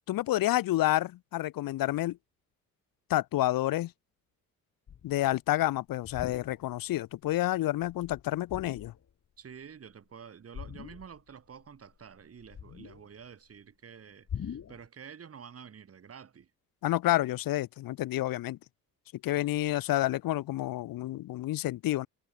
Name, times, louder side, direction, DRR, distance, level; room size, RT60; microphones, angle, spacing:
voice 1, 0.0-2.2 3.1-3.9 5.0-8.9 16.8-18.6 19.2-22.1, left 15 dB, 85° left, 1.3 m, -29 dB
sound 1, 4.9-5.3 5.9-6.9 7.3-7.5 7.8-9.1 10.5-11.3 11.6-13.2 14.3-14.9, left 8 dB, 55° left, 4.5 m, -43 dB
voice 2, 9.4-16.5, right 7 dB, 45° right, 3.3 m, -49 dB
cardioid pair, 100°, 33 cm